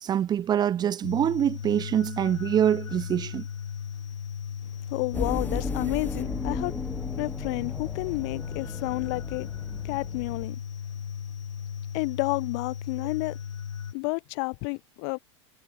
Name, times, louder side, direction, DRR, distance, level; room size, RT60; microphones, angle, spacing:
voice 1, 0.0-3.4, right 10 dB, 25° right, 0.7 m, -25 dB
sound 1, 1.0-13.9, left 8 dB, 85° left, 2.6 m, -36 dB
voice 2, 4.9-6.7 7.2-9.5 9.8-10.6 11.9-13.4 13.9-15.2, left 40 dB or more, 55° left, 2.0 m, -30 dB
sound 2, 5.1-10.5, left 3 dB, 10° left, 1.6 m, -35 dB
hypercardioid pair, 100°, 16 cm